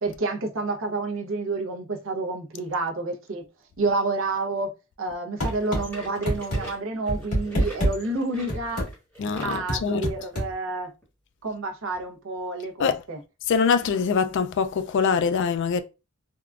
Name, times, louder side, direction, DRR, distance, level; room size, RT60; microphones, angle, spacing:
voice 1, 0.0-3.4 3.8-4.7 5.0-8.9 9.4-10.9 11.4-13.2, right 3 dB, 60° right, 0.6 m, -29 dB
sound 1, 5.4-5.8 6.3-6.6 7.1-7.9 8.5-8.9 9.7-10.5, equal, 80° left, 1.7 m, -25 dB
sound 2, 5.4-9.7 10.2-10.3 11.0-11.1 12.0-12.1, equal, 10° left, 1.1 m, -44 dB
voice 2, 9.2-10.1 12.8-13.0 13.5-15.8, left 6 dB, 55° left, 0.3 m, -23 dB
3.5 x 2.2 x 2.3 m
head